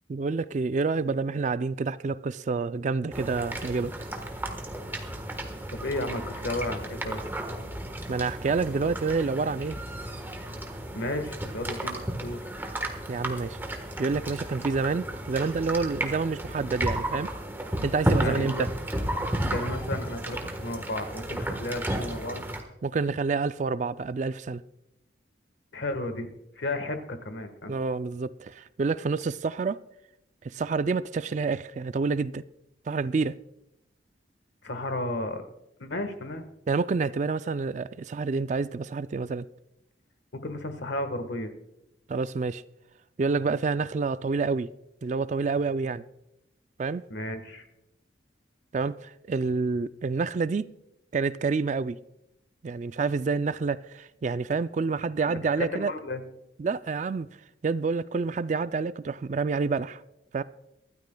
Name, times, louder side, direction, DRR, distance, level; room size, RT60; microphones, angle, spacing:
voice 1, 0.1-3.9 8.1-9.8 13.1-13.6 14.0-17.3 17.8-18.7 22.8-24.6 27.7-29.8 30.4-32.4 32.9-33.4 36.7-39.5 42.1-42.6 43.2-44.7 45.0-46.0 46.8-47.0 48.7-50.7 51.1-52.0 52.6-55.9 56.6-57.3 57.6-60.0 60.3-60.4, right 4 dB, 40° right, 0.3 m, -28 dB
sound 1, 3.1-22.6, right 1 dB, 10° right, 1.3 m, -33 dB
voice 2, 5.7-7.2 10.9-12.5 18.2-18.6 19.5-22.4 25.7-26.3 26.6-27.7 34.6-35.4 35.8-36.4 40.3-41.5 47.1-47.6 55.2-56.2, left 1 dB, 70° left, 1.4 m, -33 dB
24.0 x 12.5 x 2.3 m
head